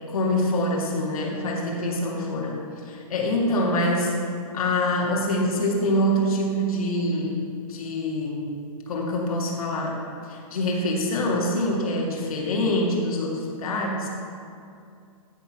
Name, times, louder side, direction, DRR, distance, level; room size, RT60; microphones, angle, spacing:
voice 1, 0.1-2.6 2.9-4.1 4.5-7.3 7.7-8.5 8.9-10.0 10.3-14.1, left 1 dB, 75° left, -1 dB, 2.2 m, -25 dB
13.5 x 4.5 x 6.2 m, 2.5 s
hypercardioid pair, 170°, 18 cm